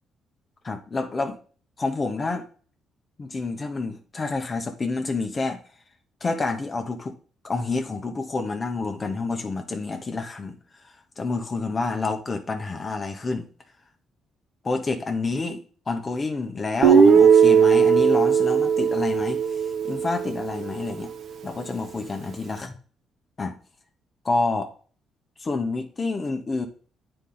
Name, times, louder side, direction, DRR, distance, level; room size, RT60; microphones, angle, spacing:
voice 1, 0.6-1.4 1.8-2.4 3.2-5.6 6.2-7.2 7.4-10.5 10.8-13.5 14.6-19.4 19.8-21.1 21.4-22.8 23.4-23.5 24.2-24.7 25.4-26.7, left 3 dB, 35° left, 1.1 m, -28 dB
Guitar, 16.8-20.8, right 6 dB, 65° right, 1.1 m, -18 dB
8.4 x 4.5 x 3.9 m
cardioid pair, 90°, 0 cm